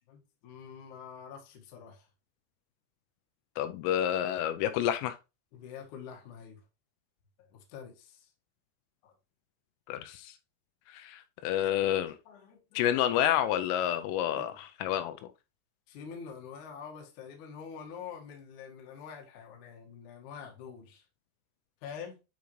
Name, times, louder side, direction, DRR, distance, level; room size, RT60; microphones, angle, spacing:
voice 1, 0.1-2.1 5.5-6.6 7.5-8.3 9.0-9.1 12.3-13.0 14.4-14.5 15.9-21.0 21.8-22.2, left 7 dB, 60° left, 2.1 m, -46 dB
voice 2, 3.6-5.2 9.9-10.3 10.9-12.2 12.8-15.3, left 11 dB, 85° left, 3.1 m, -29 dB
9.4 x 5.0 x 3.1 m
omnidirectional pair, 5.9 m